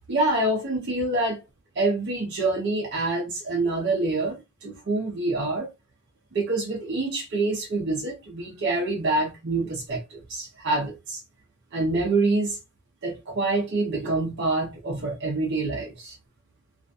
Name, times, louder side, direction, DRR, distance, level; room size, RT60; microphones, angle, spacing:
voice 1, 0.1-1.4 1.8-5.7 6.3-11.2 11.7-12.6 13.0-16.2, right 2 dB, 55° right, 0.7 m, -26 dB
2.5 x 2.2 x 2.5 m
head